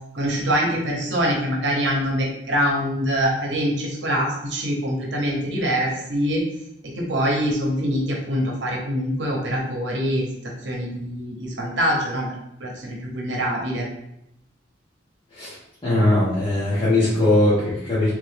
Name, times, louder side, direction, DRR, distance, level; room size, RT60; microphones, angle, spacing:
voice 1, 0.1-6.4 6.8-10.3 10.6-13.9, equal, 70° right, -1 dB, 0.9 m, -24 dB
voice 2, 15.8-18.1, left 1 dB, 25° left, -11 dB, 1.2 m, -20 dB
3.7 x 3.2 x 3.5 m, 0.80 s
head